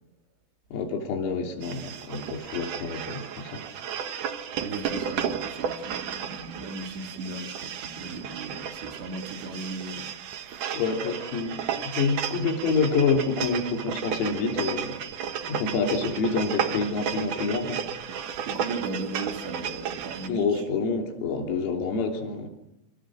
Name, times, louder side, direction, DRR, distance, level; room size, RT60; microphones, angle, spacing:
voice 1, 0.7-3.6 10.7-15.0 15.5-17.8 20.3-22.5, left 4 dB, 90° left, 6.1 m, -27 dB
sound 1, 1.6-20.3, right 8 dB, 80° right, 1.8 m, -33 dB
voice 2, 4.6-10.6 18.5-20.6, right 3 dB, 60° right, 4.9 m, -37 dB
28.0 x 28.0 x 6.4 m
omnidirectional pair, 6.0 m